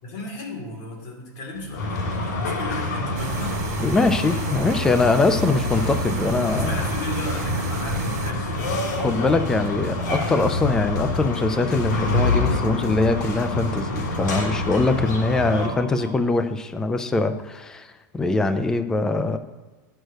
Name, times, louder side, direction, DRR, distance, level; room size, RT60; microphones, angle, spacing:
voice 1, 0.0-3.8 6.4-9.1 15.5-16.1, left 1 dB, 40° left, -1 dB, 2.5 m, -35 dB
sound 1, 1.5-14.5, left 4 dB, 70° left, 1.0 m, -40 dB
sound 2, 1.8-15.7, left 2 dB, 90° left, 2.7 m, -27 dB
sound 3, 3.2-8.3, right 10 dB, 60° right, 0.5 m, -33 dB
voice 2, 3.8-6.8 9.0-19.4, left 3 dB, 5° left, 9 dB, 0.3 m, -22 dB
9.2 x 6.4 x 6.4 m, 1.3 s
supercardioid pair, 175°, 10 cm